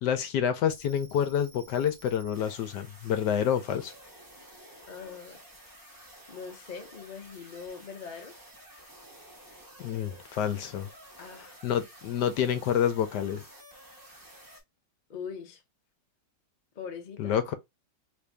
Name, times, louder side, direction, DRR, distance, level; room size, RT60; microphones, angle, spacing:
voice 1, 0.0-3.9 9.8-10.9 11.6-13.4 17.2-17.5, left 9 dB, 75° left, 1.2 m, -28 dB
sound 1, 0.7-14.6, right 1 dB, 15° right, 0.9 m, -52 dB
voice 2, 4.9-5.4 6.3-8.4 11.2-11.6 15.1-15.6 16.8-17.4, left 6 dB, 45° left, 0.6 m, -42 dB
3.3 x 2.6 x 3.3 m
omnidirectional pair, 1.9 m